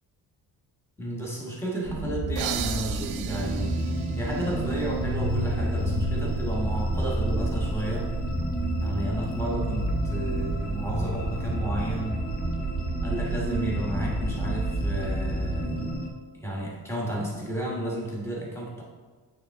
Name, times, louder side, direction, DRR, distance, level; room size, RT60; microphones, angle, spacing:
voice 1, 1.0-3.8 4.2-8.1 8.8-12.2 13.0-15.9 16.3-18.8, right 1 dB, 5° left, -4 dB, 1.3 m, -32 dB
sound 1, 1.8-15.9, right 2 dB, 25° right, 0.8 m, -29 dB
sound 2, 2.4-5.8, right 11 dB, 90° right, 0.5 m, -38 dB
sound 3, 3.3-16.1, left 1 dB, 25° left, 0.7 m, -36 dB
8.4 x 3.7 x 3.5 m, 1.4 s
cardioid pair, 150°, 38 cm